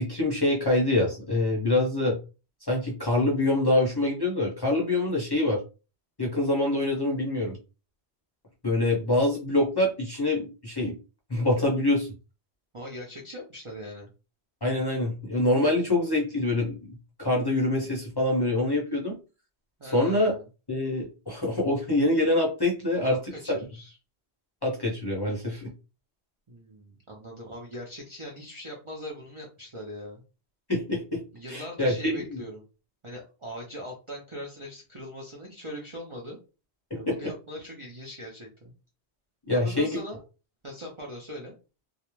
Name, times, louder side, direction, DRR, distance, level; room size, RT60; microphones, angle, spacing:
voice 1, 0.0-2.2 2.7-5.6 6.2-7.6 8.6-11.0 11.3-12.1 14.6-19.2 19.8-20.3 20.7-23.2 23.5-23.6 24.6-25.7 30.7-31.2 31.5-32.4 36.9-37.3 39.5-40.0, left 1 dB, 30° left, -3 dB, 0.6 m, -25 dB
voice 2, 12.7-14.1 19.8-20.4 23.0-23.9 26.5-30.2 31.3-32.6 33.0-36.4 36.9-38.7 39.5-40.2 40.6-41.6, equal, 40° right, -3 dB, 0.5 m, -40 dB
2.4 x 2.0 x 3.0 m, 0.32 s
omnidirectional pair, 1.1 m